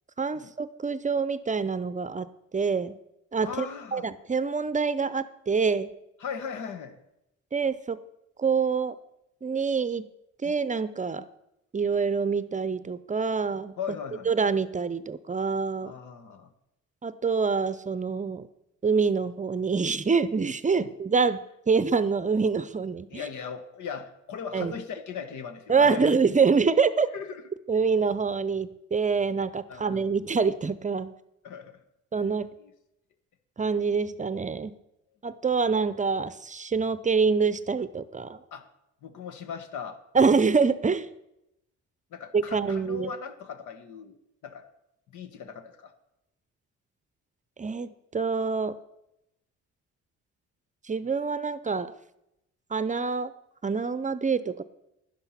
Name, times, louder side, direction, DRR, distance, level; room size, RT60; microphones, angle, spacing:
voice 1, 0.2-2.3 2.5-3.0 3.3-3.7 3.9-5.9 7.5-8.0 8.4-9.0 9.4-10.0 10.4-11.2 11.7-13.7 14.3-15.9 17.0-18.5 18.8-21.4 21.7-23.2 24.5-24.7 25.7-27.1 27.7-31.1 32.1-32.5 33.6-34.8 35.2-38.4 40.1-41.1 42.3-43.1 47.6-48.8 50.9-51.9 52.7-53.3 53.6-54.6, right 5 dB, 25° right, 15 dB, 0.6 m, -26 dB
voice 2, 3.4-4.1 6.2-7.0 10.4-10.5 11.2-11.3 13.8-14.3 15.8-16.5 20.7-20.9 23.1-26.2 27.1-27.4 29.7-30.0 31.4-31.8 32.6-32.7 38.5-38.6 39.0-40.0 42.1-44.2 44.4-44.7 45.1-45.9, left 6 dB, 80° left, 9 dB, 1.4 m, -38 dB
11.0 x 11.0 x 5.8 m, 0.85 s
cardioid pair, 90°, 30 cm